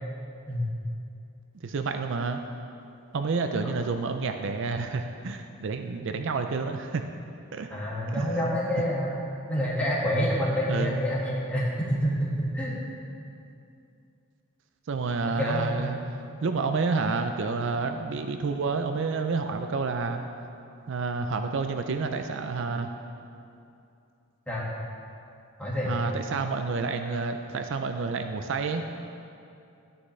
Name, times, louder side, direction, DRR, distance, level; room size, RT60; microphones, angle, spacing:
voice 1, 1.6-2.4 3.1-7.0 7.5-7.7 8.1-8.6 10.7-11.0 14.9-20.3 20.9-22.9 25.8-28.8, right 4 dB, 55° right, 6 dB, 0.4 m, -29 dB
voice 2, 7.7-9.1 9.5-12.8 15.4-15.9 24.5-24.7 25.6-25.9, equal, 5° left, -7 dB, 1.8 m, -27 dB
12.0 x 9.6 x 3.2 m, 2.6 s
head